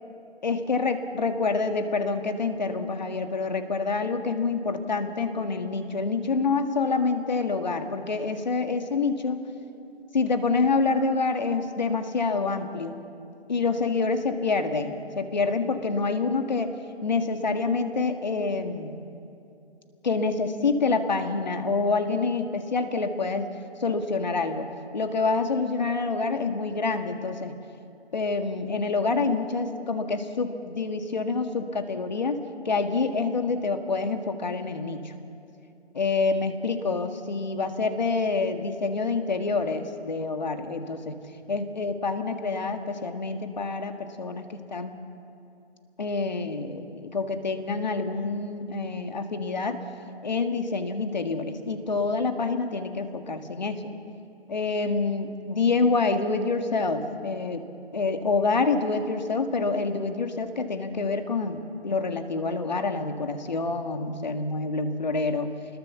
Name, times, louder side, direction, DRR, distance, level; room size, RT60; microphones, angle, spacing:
voice 1, 0.4-9.4 10.1-12.9 13.5-16.7 17.0-19.0 20.0-23.5 23.8-27.6 28.1-32.4 32.7-35.1 35.9-41.2 41.5-45.0 46.0-49.8 50.2-53.9 54.5-57.7 57.9-65.5, left 4 dB, 40° left, 7 dB, 1.8 m, -27 dB
26.0 x 21.0 x 7.1 m, 2.7 s
hypercardioid pair, 175°, 33 cm